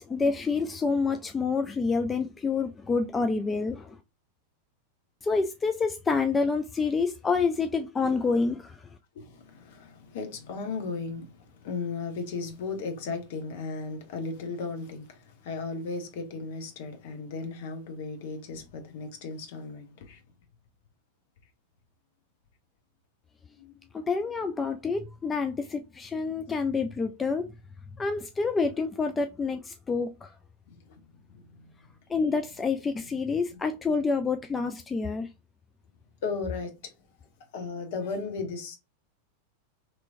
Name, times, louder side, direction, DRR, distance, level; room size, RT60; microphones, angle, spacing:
voice 1, 0.0-4.0 5.2-8.9 23.9-27.5 28.0-30.3 32.1-35.3, left 4 dB, 15° left, 0.3 m, -28 dB
voice 2, 9.1-20.2 23.6-23.7 30.7-31.0 31.3-31.7 36.2-36.9 37.5-38.8, left 4 dB, 50° left, 0.9 m, -36 dB
3.1 x 2.9 x 2.6 m
figure-of-eight pair, 90°, 0 cm